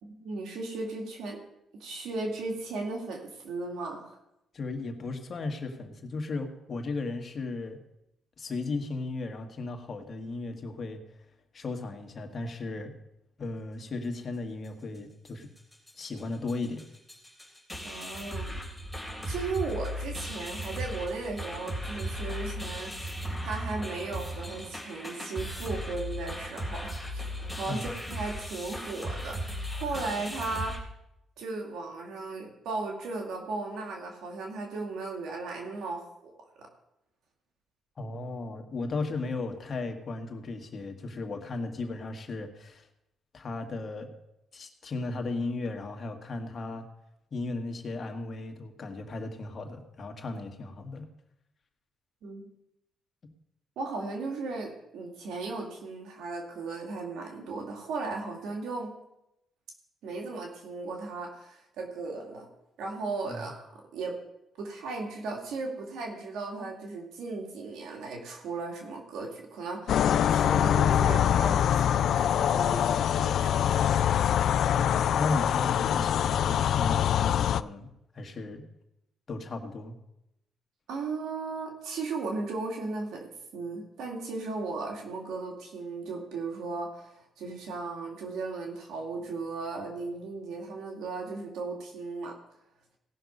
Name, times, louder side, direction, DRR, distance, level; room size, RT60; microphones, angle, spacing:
voice 1, 0.0-1.4 1.8-4.2 17.8-18.6 19.2-23.1 23.4-30.8 31.4-36.3 36.6-36.7 52.2-52.5 53.8-58.9 60.0-62.5 62.8-64.2 64.6-73.7 80.9-83.2 83.5-92.4, right 3 dB, 80° right, 1 dB, 2.3 m, -36 dB
voice 2, 4.5-7.8 8.4-11.0 11.5-12.9 13.4-15.5 16.0-16.8 27.7-27.9 38.0-42.9 43.3-44.1 44.5-46.9 47.3-51.1 63.3-63.5 74.7-77.9 78.1-78.7 79.3-79.9, left 3 dB, 45° left, 5 dB, 1.8 m, -35 dB
sound 1, 15.3-15.4 15.6-15.9 16.2-16.3 16.5-30.8, equal, ahead, 3.7 m, -37 dB
sound 2, 69.9-77.6, left 9 dB, 70° left, 0.3 m, -24 dB
17.5 x 6.3 x 5.4 m, 0.85 s
cardioid pair, 90°, 0 cm